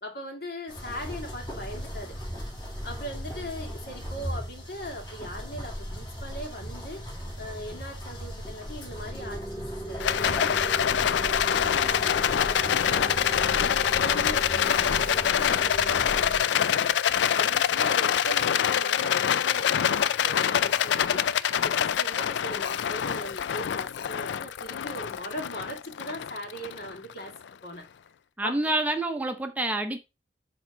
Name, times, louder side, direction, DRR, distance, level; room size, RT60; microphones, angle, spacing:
voice 1, 0.0-2.2 2.8-17.0 17.3-27.3 27.6-27.9 28.4-28.6, equal, 60° left, 2.0 m, -40 dB
sound 1, 0.7-16.4, equal, 25° left, 2.0 m, -37 dB
Rattle, 10.0-27.4, left 9 dB, 85° left, 0.4 m, -25 dB
voice 2, 28.4-30.0, right 2 dB, 10° right, 0.7 m, -27 dB
7.9 x 3.0 x 5.7 m
head